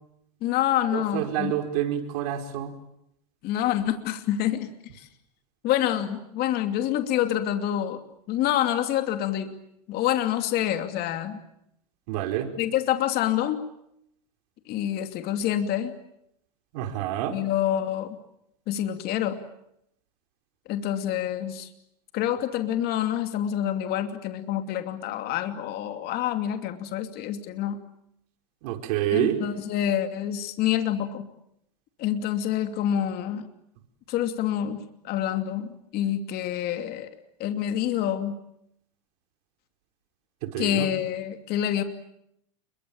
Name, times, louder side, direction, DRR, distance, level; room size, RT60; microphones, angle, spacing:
voice 1, 0.4-1.5 3.4-5.1 5.6-8.0 8.3-9.5 9.9-11.4 12.6-13.6 14.7-15.9 17.3-18.2 18.7-19.4 20.7-21.7 22.1-27.8 29.1-31.3 32.0-33.5 34.1-37.1 37.4-38.3 40.6-41.8, left 11 dB, 50° left, 7 dB, 2.7 m, -27 dB
voice 2, 0.9-2.7 12.1-12.5 16.7-17.4 28.6-29.4 40.4-40.9, right 12 dB, 70° right, 5 dB, 4.8 m, -27 dB
29.5 x 23.0 x 8.9 m, 0.79 s
supercardioid pair, 125°, 20 cm